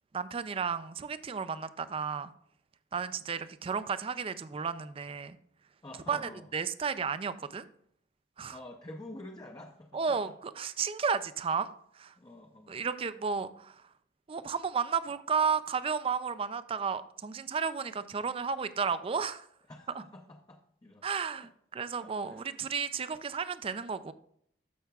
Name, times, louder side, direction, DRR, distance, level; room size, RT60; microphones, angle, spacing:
voice 1, 0.1-2.3 2.9-5.4 6.1-7.7 8.4-8.6 9.9-12.1 12.7-13.9 14.3-19.5 21.0-24.1, right 6 dB, 30° right, 13 dB, 0.4 m, -33 dB
voice 2, 5.8-6.5 8.5-10.3 12.2-12.8 19.7-21.1 21.4-21.5 22.0-22.6, left 1 dB, 20° left, 3 dB, 0.6 m, -48 dB
13.5 x 5.7 x 2.3 m, 0.68 s
head